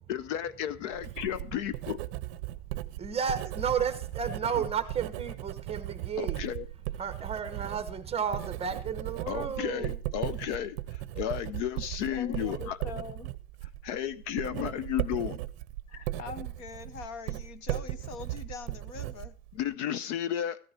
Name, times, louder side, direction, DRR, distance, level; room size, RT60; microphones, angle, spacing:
voice 1, 0.1-2.0 6.2-6.7 9.3-12.8 13.8-15.4 19.5-20.6, left 10 dB, 50° left, 15 dB, 0.8 m, -33 dB
Writing, 0.9-19.7, right 16 dB, 45° right, 0.8 m, -37 dB
voice 2, 3.0-6.4 7.0-10.0, right 7 dB, 15° right, 10 dB, 1.2 m, -32 dB
voice 3, 12.1-13.3 15.9-19.3, left 5 dB, 35° left, 14 dB, 1.1 m, -43 dB
15.0 x 10.0 x 4.4 m, 0.43 s
supercardioid pair, 150°, 45 cm